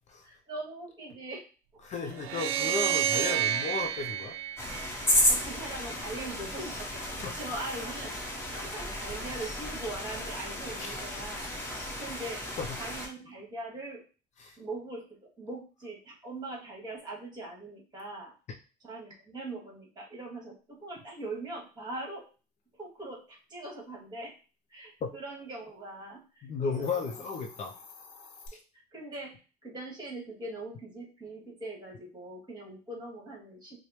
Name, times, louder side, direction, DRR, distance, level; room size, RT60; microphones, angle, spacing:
voice 1, 0.2-1.5 2.0-2.7 3.1-3.5 5.3-11.5 12.0-12.4 12.8-14.0 14.6-18.3 18.8-22.3 22.7-24.3 24.7-27.2 28.5-28.6 28.9-29.3 29.6-33.8, right 2 dB, 25° right, -1 dB, 1.8 m, -41 dB
voice 2, 1.8-4.4 7.2-7.3 10.8-11.0 12.6-12.7 14.4-14.6 25.0-25.1 26.4-27.7 28.5-28.6, left 4 dB, 45° left, 4 dB, 0.5 m, -34 dB
sound 1, 2.2-5.5, right 10 dB, 85° right, 0.4 m, -30 dB
sound 2, 4.6-13.1, left 1 dB, 15° left, 1.0 m, -33 dB
Hiss, 26.7-28.5, left 5 dB, 85° left, 0.9 m, -50 dB
4.7 x 2.1 x 3.0 m, 0.34 s
cardioid pair, 115°, 17 cm